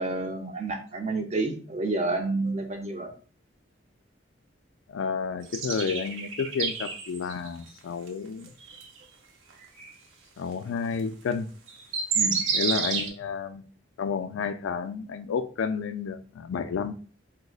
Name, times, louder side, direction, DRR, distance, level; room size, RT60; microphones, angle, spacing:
voice 1, 0.0-3.1 12.1-12.4, right 2 dB, 35° right, 0.6 m, -29 dB
voice 2, 4.9-8.5 10.4-11.5 12.5-13.6 14.0-16.9, left 5 dB, 85° left, 0.3 m, -31 dB
sound 1, 5.5-7.5 8.1-8.2 8.7-8.9 9.8-9.9 11.3-11.4 11.7-13.1, right 5 dB, 85° right, 0.6 m, -29 dB
4.8 x 2.1 x 2.3 m
head